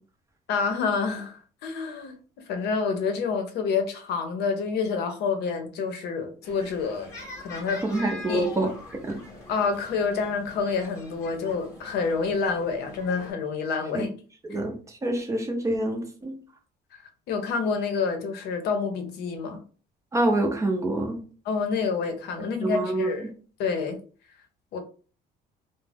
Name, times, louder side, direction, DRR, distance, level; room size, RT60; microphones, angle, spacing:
voice 1, 0.5-2.1 2.5-7.1 7.4-7.8 8.3-8.5 9.5-14.1 14.5-14.6 17.3-19.6 21.4-23.3 23.6-24.0 24.7-24.8, left 5 dB, 65° left, 0.7 m, -28 dB
sound 1, 6.4-13.3, left 2 dB, 15° left, 0.8 m, -43 dB
voice 2, 7.9-9.2 13.9-14.1 14.4-16.4 20.1-21.2 22.6-23.1, right 1 dB, 15° right, 0.5 m, -26 dB
2.5 x 2.1 x 3.3 m
cardioid pair, 145°, 18 cm